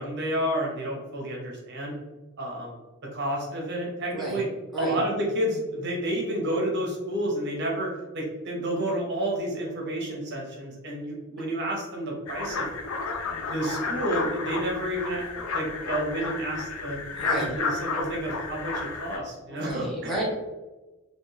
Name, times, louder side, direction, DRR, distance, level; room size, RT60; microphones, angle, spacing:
voice 1, 0.0-1.9 2.4-2.8 3.1-4.5 4.8-12.7 13.2-17.0 17.3-20.1, right 1 dB, 55° right, -2 dB, 1.0 m, -30 dB
sound 1, 12.3-19.2, left 4 dB, 90° left, 0.5 m, -32 dB
voice 2, 17.1-17.5 19.5-20.2, right 2 dB, ahead, -6 dB, 1.0 m, -32 dB
3.4 x 2.8 x 3.2 m, 1.1 s
head